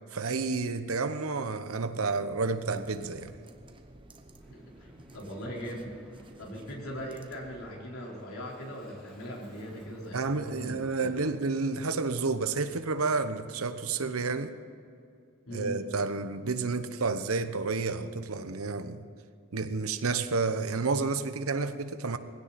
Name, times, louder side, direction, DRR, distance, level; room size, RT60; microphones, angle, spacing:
voice 1, 0.1-3.3 10.1-14.6 15.5-19.0 19.5-22.2, right 4 dB, 90° right, 10 dB, 1.0 m, -30 dB
sound 1, 2.5-7.9, right 1 dB, 25° right, 1.0 m, -53 dB
Aircraft, 4.4-13.2, equal, 10° left, 3.6 m, -57 dB
voice 2, 4.5-5.9 6.4-11.2 15.5-15.8, equal, 85° left, -3 dB, 4.2 m, -40 dB
21.0 x 16.5 x 4.3 m, 2.5 s
head